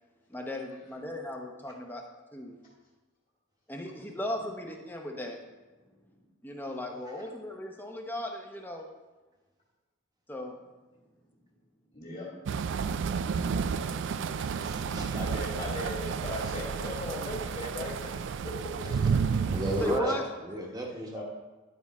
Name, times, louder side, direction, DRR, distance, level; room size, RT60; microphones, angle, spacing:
voice 1, 0.3-2.0 2.3-2.5 3.7-5.4 6.4-8.9 10.3-10.6 19.6-20.2, left 1 dB, 10° left, 2 dB, 0.8 m, -36 dB
voice 2, 5.8-6.2 11.9-12.3 13.5-13.6 15.1-18.1 18.4-18.5 21.1-21.2, left 2 dB, 35° left, -6 dB, 2.2 m, -38 dB
sound 1, 12.5-20.0, right 6 dB, 60° right, 0.3 m, -31 dB
voice 3, 14.3-15.2 18.9-19.0 19.5-21.2, right 1 dB, 20° right, 0 dB, 1.1 m, -34 dB
11.5 x 4.7 x 4.2 m, 1.2 s
head